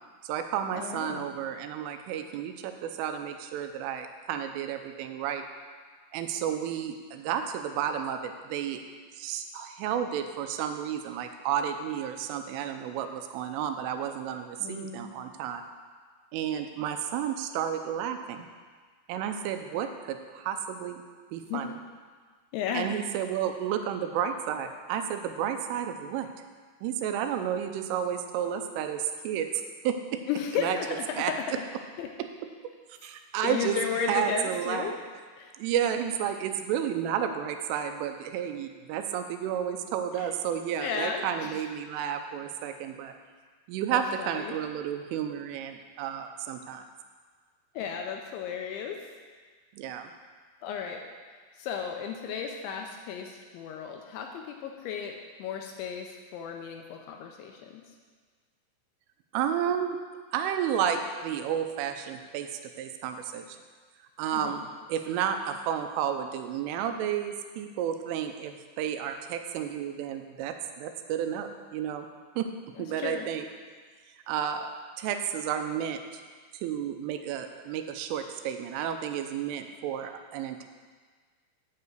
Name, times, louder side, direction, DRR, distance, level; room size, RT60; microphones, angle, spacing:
voice 1, 0.2-5.4 6.1-8.8 9.2-15.6 16.3-18.5 19.1-21.0 21.3-21.8 22.7-26.3 26.8-29.5 29.8-30.2 30.6-30.8 31.2-31.3 32.9-33.8 34.1-35.0 35.6-43.1 43.7-46.9 49.7-50.1 59.3-60.0 60.3-62.5 62.8-63.6 64.2-72.1 72.4-72.5 72.8-73.5 74.3-74.7 75.0-76.2 76.6-80.7, right 9 dB, 90° right, 7 dB, 3.2 m, -31 dB
voice 2, 0.8-1.3 14.6-15.1 21.5-21.7 22.5-22.9 30.3-31.5 32.0-32.1 33.4-34.9 35.4-35.5 40.2-40.3 40.8-41.6 43.9-44.5 47.8-49.0 50.6-51.0 51.6-57.8 64.3-64.6 72.8-73.3, left 7 dB, 85° left, 3 dB, 2.8 m, -34 dB
8.9 x 5.7 x 7.8 m, 1.5 s
omnidirectional pair, 5.7 m